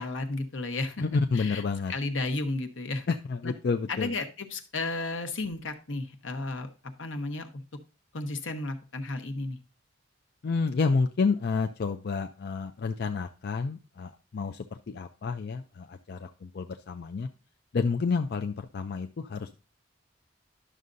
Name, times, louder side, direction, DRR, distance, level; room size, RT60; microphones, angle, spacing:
voice 1, 0.0-1.0 1.3-1.6 1.9-3.1 3.4-3.5 3.9-6.7 7.0-7.6 8.1-9.6, left 2 dB, 80° left, 6 dB, 1.0 m, -33 dB
voice 2, 1.0-1.9 3.1-4.1 10.4-17.3 17.7-19.6, left 4 dB, 55° left, 5 dB, 0.4 m, -29 dB
11.0 x 6.4 x 2.6 m, 0.33 s
head